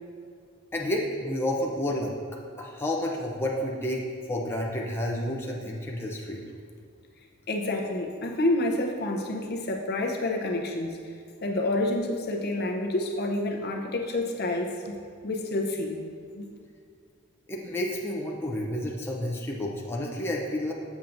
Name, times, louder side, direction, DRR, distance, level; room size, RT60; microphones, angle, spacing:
voice 1, 0.7-2.1 2.6-6.4 17.5-20.7, left 1 dB, 10° left, -2 dB, 0.5 m, -30 dB
voice 2, 7.5-11.0 11.4-14.9 15.2-16.0 16.3-16.6, left 2 dB, 50° left, 1 dB, 0.7 m, -28 dB
7.2 x 7.1 x 2.6 m, 2.2 s
head